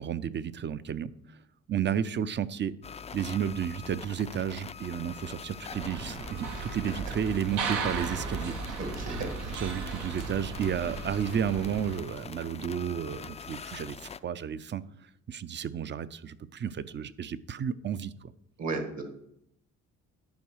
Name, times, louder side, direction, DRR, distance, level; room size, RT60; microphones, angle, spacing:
voice 1, 0.0-1.4 1.7-2.7 3.1-8.5 9.5-14.8 15.3-18.3, right 8 dB, 35° right, 16 dB, 0.5 m, -32 dB
sound 1, 2.8-14.2, left 6 dB, 20° left, 0.3 m, -44 dB
sound 2, 5.7-12.0, right 4 dB, 85° right, 1.2 m, -36 dB
voice 2, 8.8-9.5 18.6-19.0, right 3 dB, 60° right, 5 dB, 2.0 m, -34 dB
10.5 x 4.7 x 6.3 m, 0.75 s
cardioid pair, 90°, 30 cm